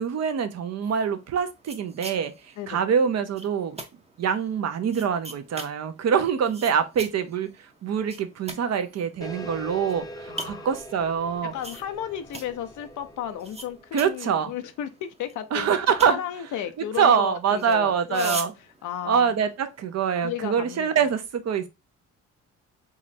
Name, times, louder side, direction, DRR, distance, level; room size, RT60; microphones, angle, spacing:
voice 1, 0.0-2.3 2.7-3.8 4.2-7.5 7.8-10.0 10.4-11.5 13.9-14.5 15.5-16.2 17.0-18.5 19.0-21.7, right 7 dB, 60° right, 0.8 m, -24 dB
sound 1, 0.8-19.8, right 2 dB, 20° right, 0.8 m, -43 dB
sound 2, 9.2-14.3, equal, 10° left, 0.7 m, -42 dB
voice 2, 10.3-10.8 11.5-15.7 16.0-18.4 18.8-19.3 20.2-21.0, left 10 dB, 75° left, 0.6 m, -34 dB
3.8 x 3.1 x 2.7 m
cardioid pair, 90°, 30 cm